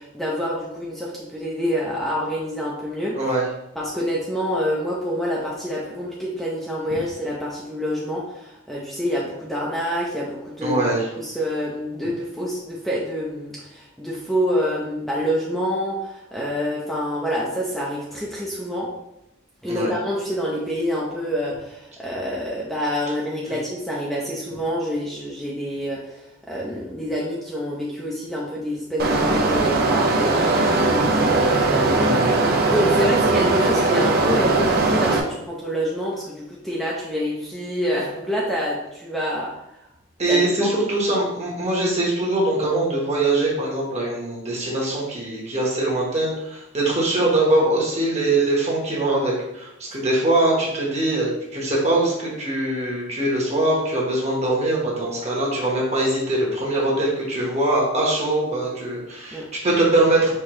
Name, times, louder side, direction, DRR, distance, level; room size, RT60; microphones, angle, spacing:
voice 1, 0.0-3.2 3.8-10.8 11.1-18.9 19.6-32.0 32.6-39.9 40.3-40.7 59.3-59.5, equal, ahead, -6 dB, 0.5 m, -27 dB
voice 2, 3.1-3.4 10.6-11.1 19.7-19.9 32.0-32.4 40.2-60.3, right 2 dB, 35° right, -4 dB, 1.1 m, -22 dB
sound 1, 29.0-35.2, right 3 dB, 50° right, 0.5 m, -19 dB
4.6 x 2.8 x 3.0 m, 0.87 s
head